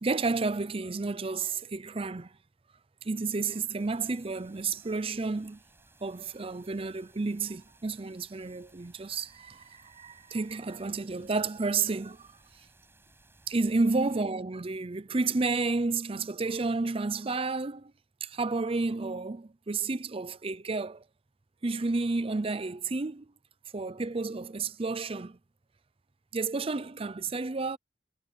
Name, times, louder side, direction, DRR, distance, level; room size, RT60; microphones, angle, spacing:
voice 1, 0.0-2.3 3.0-5.6 6.0-12.3 13.5-17.9 18.2-21.0 21.6-23.3 23.7-25.4 26.3-27.8, right 3 dB, 30° right, 0.6 m, -31 dB
sound 1, 3.8-14.2, right 2 dB, 15° right, 7.3 m, -61 dB
head